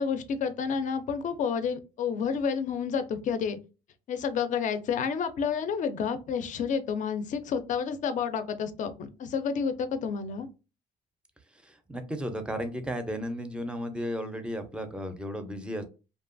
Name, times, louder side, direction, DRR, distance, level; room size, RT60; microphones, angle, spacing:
voice 1, 0.0-3.6 4.1-10.5, left 6 dB, 50° left, 10 dB, 0.4 m, -30 dB
voice 2, 11.6-15.8, equal, 5° right, 8 dB, 0.5 m, -34 dB
2.8 x 2.3 x 2.5 m, 0.31 s
cardioid pair, 110°, 17 cm